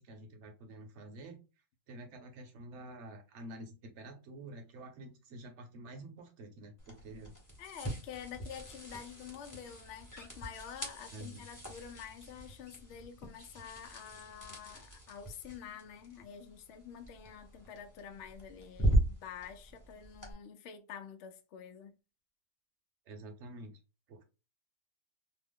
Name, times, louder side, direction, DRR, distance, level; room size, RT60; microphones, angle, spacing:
voice 1, 0.0-1.4 1.9-7.3 11.1-11.4 23.1-23.7 24.1-24.2, right 1 dB, 55° right, 0.9 m, -48 dB
sound 1, 6.8-20.3, right 1 dB, 15° left, 0.7 m, -39 dB
voice 2, 7.6-21.9, left 8 dB, 75° left, 0.6 m, -48 dB
2.9 x 2.0 x 3.5 m
omnidirectional pair, 1.8 m